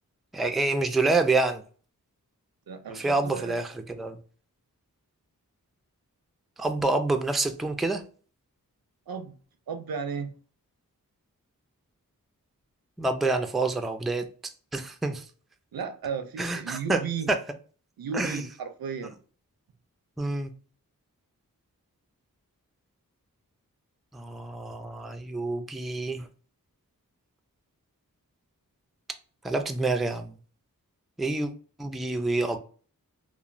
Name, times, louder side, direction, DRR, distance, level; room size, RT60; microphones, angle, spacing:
voice 1, 0.3-1.6 2.9-4.2 6.6-8.0 13.0-14.3 14.7-15.2 16.4-17.0 18.1-18.4 20.2-20.5 24.1-26.3 29.4-30.3 31.2-31.5 31.8-32.6, right 3 dB, ahead, 0.3 m, -27 dB
voice 2, 2.7-3.6 9.1-9.3 9.7-10.3 15.7-17.3 18.0-19.2, right 6 dB, 80° right, 0.5 m, -34 dB
3.0 x 2.1 x 2.5 m
wide cardioid pair, 50°, 35 cm